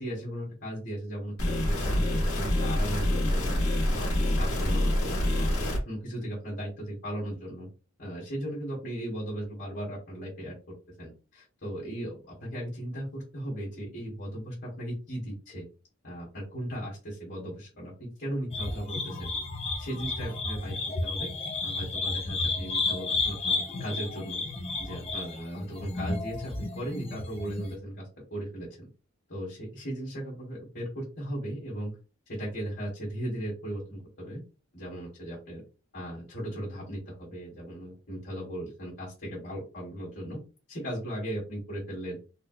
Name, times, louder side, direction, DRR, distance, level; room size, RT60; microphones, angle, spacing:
voice 1, 0.0-7.7 8.0-10.5 11.0-15.6 16.0-19.3 19.8-21.3 21.6-24.4 24.8-28.9 29.3-31.9 32.3-34.4 34.7-35.6 35.9-40.4 40.7-42.2, equal, 45° left, -5 dB, 1.4 m, -37 dB
sound 1, 1.4-5.8, left 1 dB, 80° left, 1.1 m, -26 dB
sound 2, 18.5-27.8, left 3 dB, 25° left, 0.4 m, -32 dB
3.8 x 2.2 x 2.5 m, 0.33 s
head